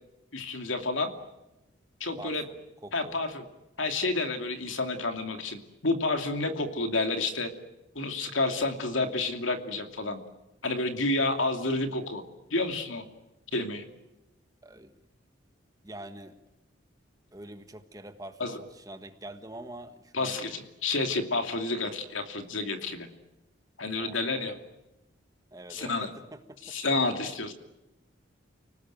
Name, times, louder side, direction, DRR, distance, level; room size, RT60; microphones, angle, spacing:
voice 1, 0.3-1.1 2.0-2.4 2.9-3.4 3.8-7.5 7.9-10.2 10.6-12.2 12.5-13.0 13.5-13.8 18.4-18.6 20.1-23.1 23.8-24.6 25.7-26.1 26.6-27.5, left 2 dB, 75° left, 6 dB, 2.7 m, -30 dB
voice 2, 2.2-3.2 14.6-14.9 15.8-16.4 17.3-20.4 24.0-24.3 25.5-26.8, right 1 dB, 15° right, 8 dB, 1.4 m, -45 dB
30.0 x 19.5 x 9.2 m, 0.98 s
head